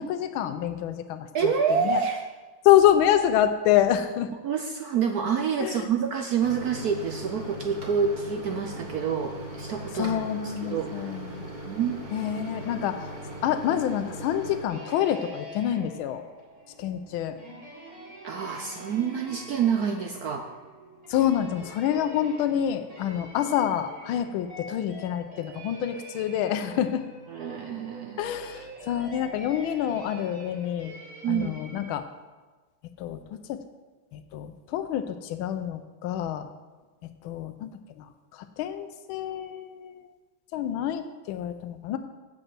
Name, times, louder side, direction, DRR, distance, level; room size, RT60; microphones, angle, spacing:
voice 1, 0.0-1.5 1.8-2.0 2.6-4.3 5.6-5.9 9.9-11.4 12.1-13.1 13.4-16.2 16.8-17.4 21.1-27.1 28.2-30.9 31.3-32.0 33.0-33.6 34.1-36.5 37.2-37.7 38.0-40.1 40.5-42.0, left 10 dB, 85° left, 9 dB, 1.4 m, -27 dB
voice 2, 1.3-2.2 4.4-10.2 10.4-11.2 11.7-12.0 18.2-20.5 27.3-28.3 31.2-31.6, right 6 dB, 65° right, 5 dB, 0.9 m, -27 dB
Microwave oven, 6.4-14.7, right 1 dB, 25° right, 1.6 m, -39 dB
sound 1, 12.1-31.9, right 1 dB, 45° right, 3.1 m, -46 dB
7.8 x 7.5 x 7.5 m, 1.3 s
omnidirectional pair, 2.2 m